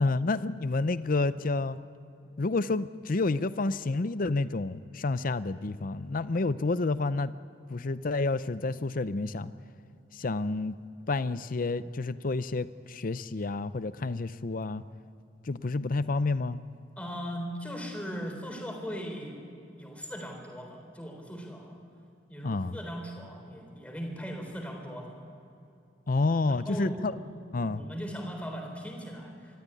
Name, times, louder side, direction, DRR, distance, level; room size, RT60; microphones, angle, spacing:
voice 1, 0.0-1.8 2.4-7.3 7.7-9.5 10.1-10.8 11.1-14.8 15.4-16.6 22.4-22.8 26.1-27.2 27.5-27.8, left 3 dB, 50° left, 14 dB, 0.6 m, -29 dB
voice 2, 17.0-19.4 19.8-21.8 22.3-25.2 26.6-27.1 27.6-29.6, equal, 10° left, 2 dB, 3.9 m, -39 dB
25.0 x 13.0 x 9.9 m, 2.7 s
head